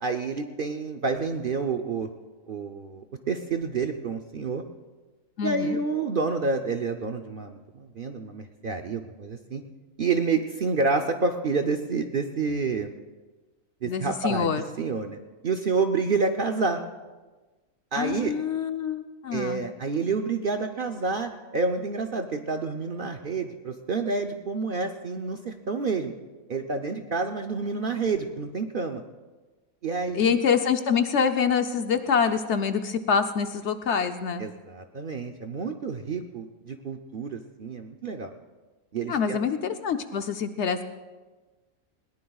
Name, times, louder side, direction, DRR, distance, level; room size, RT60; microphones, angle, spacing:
voice 1, 0.0-2.1 2.5-4.6 5.4-9.6 10.0-12.9 13.8-14.5 14.8-15.2 15.4-16.8 17.9-18.3 19.3-26.1 26.5-29.0 29.8-30.3 34.4-38.3 38.9-39.4, right 4 dB, 50° right, 5 dB, 0.7 m, -28 dB
voice 2, 5.4-5.8 13.8-14.6 18.0-19.6 30.1-34.5 39.1-40.8, left 6 dB, 60° left, 8 dB, 0.9 m, -25 dB
20.5 x 18.5 x 2.4 m, 1.3 s
omnidirectional pair, 1.5 m